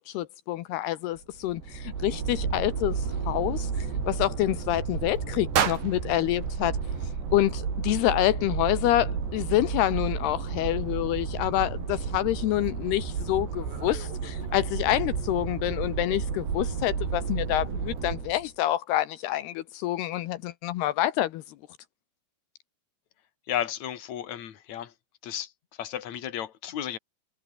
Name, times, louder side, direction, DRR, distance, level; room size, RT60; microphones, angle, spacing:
voice 1, 0.0-6.8 7.3-21.4, left 14 dB, 80° left, 3.0 m, -27 dB
sound 1, 1.2-18.4, right 6 dB, 85° right, 7.7 m, -32 dB
sound 2, 5.5-7.7, right 9 dB, 55° right, 3.6 m, -31 dB
voice 2, 23.5-24.9 25.2-27.0, left 10 dB, 50° left, 3.2 m, -33 dB
omnidirectional pair, 4.8 m